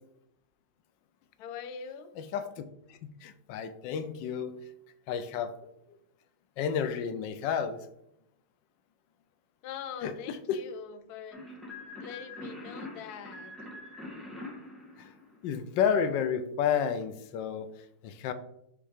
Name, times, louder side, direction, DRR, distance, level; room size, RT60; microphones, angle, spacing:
voice 1, 1.4-2.1 9.6-11.4 11.9-13.6, left 7 dB, 70° left, 10 dB, 1.1 m, -43 dB
voice 2, 2.2-4.6 5.1-5.7 6.6-7.8 10.0-10.6 15.0-15.1 15.4-17.7 18.0-18.3, left 7 dB, 85° left, 11 dB, 1.3 m, -31 dB
sound 1, 11.3-15.8, left 2 dB, ahead, 1.5 m, -44 dB
7.3 x 3.3 x 4.9 m, 0.79 s
omnidirectional pair, 1.9 m